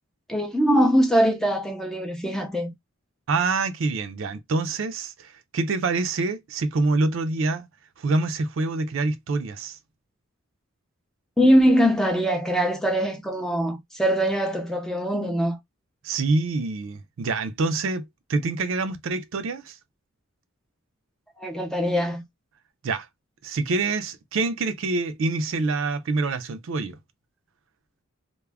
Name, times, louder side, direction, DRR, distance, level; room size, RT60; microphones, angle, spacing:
voice 1, 0.3-2.7 11.4-15.6 21.4-22.2, equal, ahead, 0.4 m, -22 dB
voice 2, 3.3-7.7 8.0-9.8 16.0-19.8 22.8-23.1 23.4-27.0, right 3 dB, 70° right, 0.4 m, -26 dB
2.3 x 2.1 x 3.3 m
head